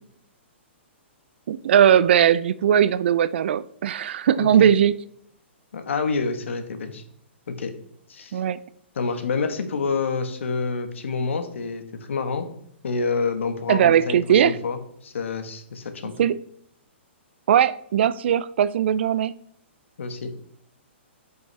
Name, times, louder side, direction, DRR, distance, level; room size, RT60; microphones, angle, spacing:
voice 1, 1.5-5.0 8.3-8.6 13.7-14.6 16.2-16.4 17.5-19.3, right 9 dB, 60° right, 17 dB, 0.4 m, -19 dB
voice 2, 4.4-4.7 5.7-7.0 7.5-7.7 8.1-8.4 8.9-12.5 12.8-16.1 20.0-20.3, left 4 dB, 80° left, 7 dB, 1.2 m, -28 dB
9.5 x 5.4 x 3.3 m, 0.69 s
hypercardioid pair, 140°, 7 cm